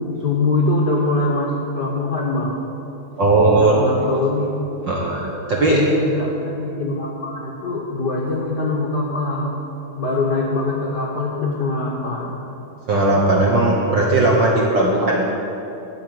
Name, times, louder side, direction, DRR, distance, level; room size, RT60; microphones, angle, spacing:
voice 1, 0.2-2.6 3.5-4.5 5.7-9.6 10.0-12.4, left 2 dB, 60° left, -3 dB, 1.1 m, -23 dB
voice 2, 3.2-3.7 4.9-5.8 12.9-15.2, right 2 dB, 55° right, -3 dB, 1.3 m, -17 dB
13.5 x 5.1 x 9.2 m, 2.9 s
omnidirectional pair, 3.4 m